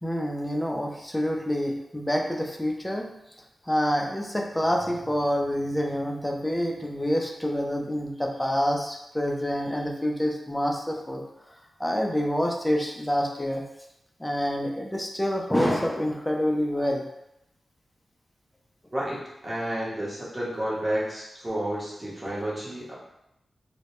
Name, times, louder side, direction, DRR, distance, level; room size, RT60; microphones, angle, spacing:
voice 1, 0.0-3.1 3.6-13.6 14.2-17.0, equal, 10° left, 1 dB, 0.3 m, -27 dB
voice 2, 18.9-23.0, right 1 dB, 20° right, -6 dB, 0.8 m, -31 dB
2.1 x 2.1 x 2.9 m, 0.85 s
wide cardioid pair, 90°, 0 cm